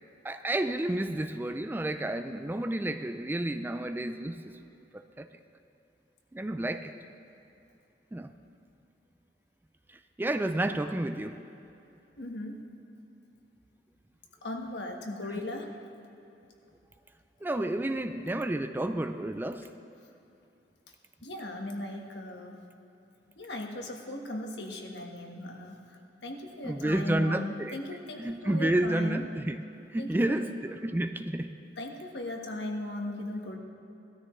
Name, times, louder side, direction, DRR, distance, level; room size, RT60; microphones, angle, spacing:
voice 1, 0.2-4.5 4.9-5.3 6.3-6.9 8.1-8.3 10.2-11.4 17.4-19.7 26.6-27.8 28.2-29.6 29.9-31.5, right 1 dB, 10° right, 8 dB, 0.4 m, -30 dB
voice 2, 12.2-12.6 14.4-15.7 21.2-22.6 23.4-29.2 30.0-30.5 31.8-33.6, left 1 dB, 70° left, 1 dB, 1.4 m, -38 dB
18.0 x 13.0 x 3.2 m, 2.8 s
head